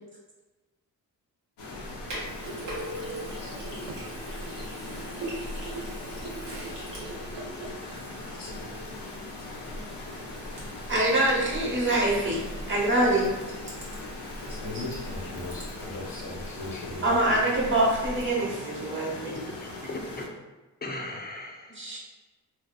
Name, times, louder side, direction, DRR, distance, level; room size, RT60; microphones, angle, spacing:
sound 1, 1.6-20.3, left 2 dB, 70° left, 0.7 m, -40 dB
Sink (filling or washing), 1.7-18.3, right 1 dB, 85° right, 0.9 m, -41 dB
Telephone, 2.6-3.3 3.9-4.0 5.7-5.9 6.3-6.4 11.7-12.6 19.7-19.9, right 1 dB, 65° right, 0.5 m, -40 dB
voice 1, 10.9-12.4 12.7-13.3 14.7-14.8 17.0-19.4 21.7-22.0, right 1 dB, 30° right, -3 dB, 0.9 m, -24 dB
voice 2, 14.5-17.4, left 2 dB, 90° left, -5 dB, 1.0 m, -38 dB
voice 3, 19.3-20.3 20.8-22.0, left 2 dB, 25° left, 1 dB, 0.5 m, -38 dB
2.6 x 2.2 x 2.3 m, 1.2 s
cardioid pair, 55°, 42 cm